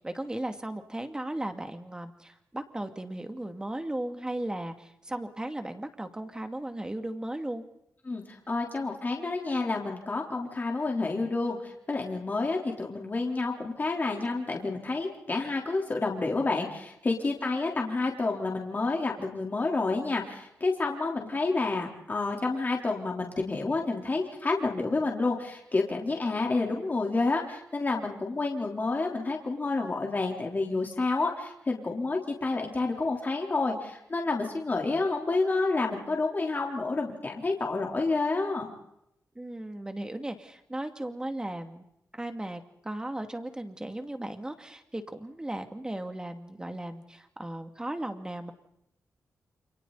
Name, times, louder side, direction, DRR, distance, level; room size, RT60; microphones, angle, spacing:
voice 1, 0.0-7.6 39.4-41.8 42.1-48.5, right 1 dB, 15° right, 6 dB, 2.5 m, -36 dB
voice 2, 8.1-38.7, left 3 dB, 30° left, 0 dB, 3.8 m, -29 dB
29.5 x 28.5 x 4.2 m, 0.77 s
wide cardioid pair, 130°, 6 cm